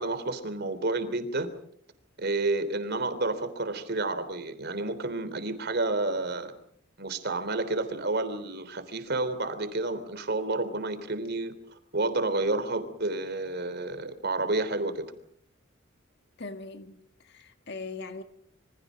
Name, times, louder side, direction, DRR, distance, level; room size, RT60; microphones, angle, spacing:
voice 1, 0.0-1.5 2.2-6.5 7.0-11.5 11.9-15.1, right 2 dB, 55° right, 3.4 m, -30 dB
voice 2, 16.4-18.2, left 3 dB, 55° left, 1.7 m, -40 dB
28.0 x 25.0 x 5.3 m
head